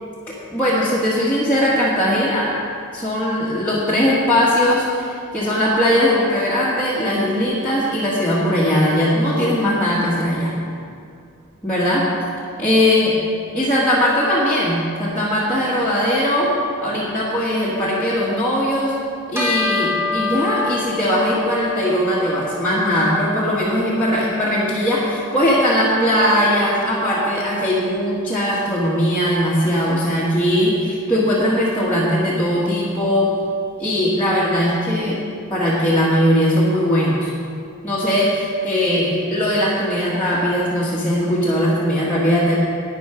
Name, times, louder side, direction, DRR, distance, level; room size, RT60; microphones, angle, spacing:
voice 1, 0.3-2.5 2.9-10.5 11.6-12.1 12.6-13.1 13.5-16.5 16.8-19.0 19.3-33.3 33.8-35.2 35.5-37.3 37.8-42.6, equal, 10° left, -10 dB, 1.6 m, -19 dB
Bell, 19.3-29.0, left 4 dB, 10° right, 1.5 m, -30 dB
11.5 x 9.4 x 5.0 m, 2.4 s
head